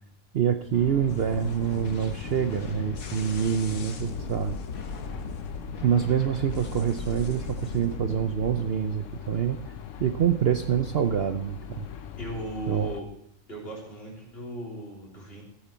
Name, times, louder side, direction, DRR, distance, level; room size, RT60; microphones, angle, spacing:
voice 1, 0.3-4.6 5.8-9.6 10.0-11.9 12.7-12.9, right 9 dB, 55° right, 7 dB, 0.8 m, -26 dB
sound 1, 0.7-13.0, left 9 dB, 65° left, 1.1 m, -40 dB
sound 2, 1.0-8.6, left 3 dB, 85° left, 1.6 m, -38 dB
voice 2, 12.2-13.1 13.5-15.4, right 1 dB, 45° left, -2 dB, 3.9 m, -37 dB
13.5 x 9.0 x 4.4 m, 0.72 s
omnidirectional pair, 1.4 m